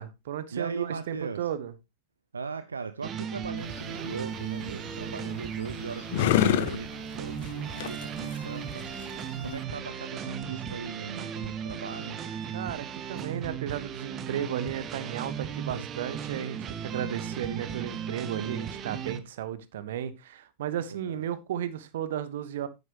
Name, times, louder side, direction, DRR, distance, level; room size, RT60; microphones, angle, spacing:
voice 1, 0.0-1.7 12.5-22.7, right 10 dB, 55° right, 1.0 m, -34 dB
voice 2, 0.5-1.5 2.3-12.2 15.7-15.9 17.5-17.7 18.3-18.6 20.9-21.3, right 5 dB, 75° right, 0.6 m, -39 dB
sound 1, 3.0-19.2, right 8 dB, 30° right, 1.1 m, -36 dB
sound 2, 3.6-9.6, left 11 dB, 55° left, 0.8 m, -31 dB
9.5 x 9.4 x 3.0 m
figure-of-eight pair, 90°, 0 cm